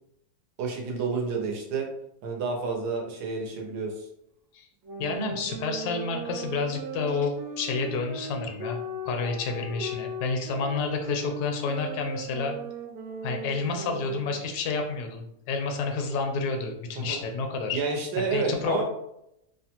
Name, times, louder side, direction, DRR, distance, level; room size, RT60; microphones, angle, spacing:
voice 1, 0.6-1.9 2.2-4.1 17.0-17.2 17.7-18.8, right 4 dB, 85° right, 1 dB, 1.3 m, -29 dB
sound 1, 4.8-14.5, right 2 dB, 65° right, 0.9 m, -38 dB
voice 2, 5.0-8.8 9.0-12.6 13.2-17.8 18.3-18.8, left 4 dB, 80° left, 4 dB, 1.1 m, -30 dB
2.9 x 2.2 x 2.8 m, 0.81 s
omnidirectional pair, 1.7 m